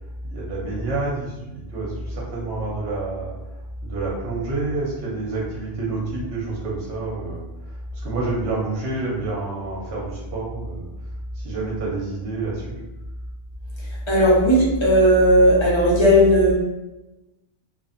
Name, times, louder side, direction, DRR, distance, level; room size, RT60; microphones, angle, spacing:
voice 1, 0.3-3.3 3.8-7.5 8.0-10.9 11.4-12.8, right 3 dB, 70° right, -4 dB, 1.0 m, -28 dB
voice 2, 14.1-16.5, equal, 25° left, -6 dB, 0.8 m, -15 dB
2.5 x 2.4 x 2.5 m, 1.0 s
omnidirectional pair, 1.3 m